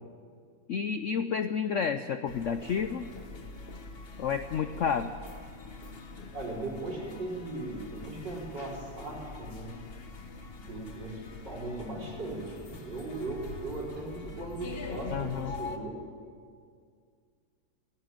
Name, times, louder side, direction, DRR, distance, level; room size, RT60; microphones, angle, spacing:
voice 1, 0.7-3.1 4.2-5.1 15.1-15.5, left 6 dB, 80° left, 10 dB, 0.6 m, -30 dB
sound 1, 2.3-15.8, left 3 dB, 35° left, 1.2 m, -44 dB
voice 2, 6.3-9.7 10.5-15.9, right 2 dB, 65° right, -4 dB, 4.8 m, -38 dB
28.5 x 10.5 x 9.0 m, 2.2 s
omnidirectional pair, 2.0 m